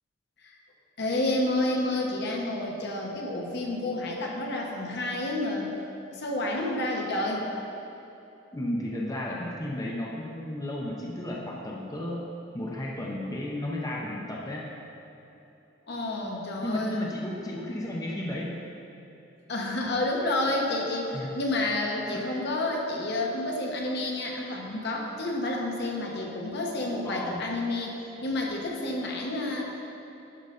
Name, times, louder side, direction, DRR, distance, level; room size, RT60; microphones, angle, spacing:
voice 1, 1.0-5.7 6.1-7.5 15.9-17.1 19.5-27.9 28.2-29.8, left 2 dB, 60° left, -1 dB, 1.2 m, -29 dB
voice 2, 8.5-12.3 12.5-14.6 16.6-18.6 21.0-21.3 22.1-22.2 27.0-27.5, left 1 dB, 20° left, -3 dB, 0.8 m, -33 dB
11.0 x 4.1 x 5.4 m, 3.0 s
head